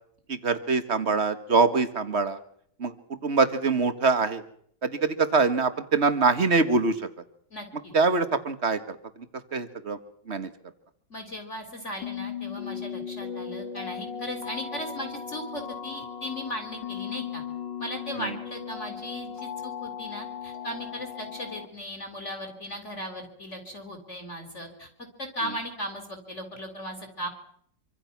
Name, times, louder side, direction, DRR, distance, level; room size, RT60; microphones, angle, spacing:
voice 1, 0.3-2.4 2.8-4.4 4.8-7.1 7.9-9.0 9.5-10.0 10.3-10.5 18.1-18.3, right 4 dB, 40° right, 11 dB, 1.9 m, -24 dB
voice 2, 7.5-7.9 11.1-17.4 17.8-24.9 25.2-27.3, equal, 40° left, 5 dB, 4.2 m, -37 dB
sound 1, 12.0-21.7, left 7 dB, 80° left, 3.2 m, -37 dB
27.0 x 25.0 x 6.1 m, 0.67 s
omnidirectional pair, 1.9 m